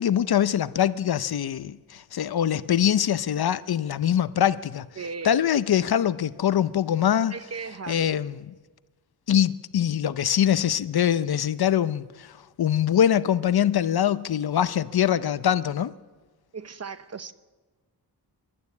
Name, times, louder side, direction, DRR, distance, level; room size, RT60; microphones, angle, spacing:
voice 1, 0.0-4.9 5.2-7.4 7.9-8.5 9.3-15.9, left 10 dB, 70° left, 0.7 m, -23 dB
voice 2, 5.0-5.4 7.3-8.1 16.5-17.3, right 5 dB, 40° right, 0.8 m, -36 dB
27.0 x 12.0 x 8.4 m
wide cardioid pair, 150°, 40 cm